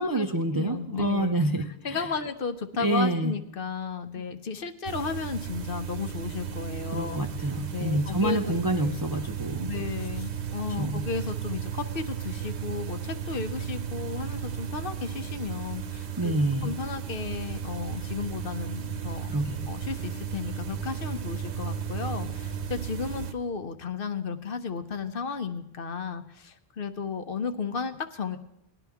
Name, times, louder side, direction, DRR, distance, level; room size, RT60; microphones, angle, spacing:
voice 1, 0.0-2.1 2.8-3.3 6.9-9.7 10.8-11.0 16.2-16.7 19.3-19.7, right 1 dB, 30° right, 4 dB, 0.4 m, -27 dB
voice 2, 0.5-1.4 1.8-9.0 9.6-19.3 19.7-28.4, left 5 dB, 60° left, 9 dB, 0.9 m, -34 dB
sound 1, 4.8-23.3, right 8 dB, 85° right, 1.1 m, -35 dB
18.5 x 11.0 x 3.5 m, 0.78 s
omnidirectional pair, 1.1 m